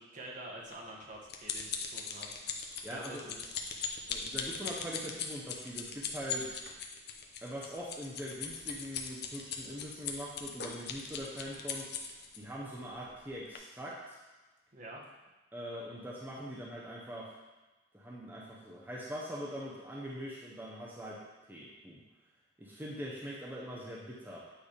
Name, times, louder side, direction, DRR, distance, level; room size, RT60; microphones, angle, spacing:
voice 1, 0.0-3.5 14.7-15.0, right 1 dB, 45° right, -3 dB, 1.3 m, -48 dB
sound 1, 0.7-12.4 13.0-13.2 13.6-13.7, left 6 dB, 55° left, 0.7 m, -39 dB
voice 2, 2.8-3.2 4.1-6.6 7.4-11.9 12.3-14.2 15.5-17.3 17.9-21.2 21.5-22.0 22.6-24.5, equal, 10° right, -5 dB, 0.8 m, -42 dB
8.7 x 3.4 x 5.0 m, 1.1 s
head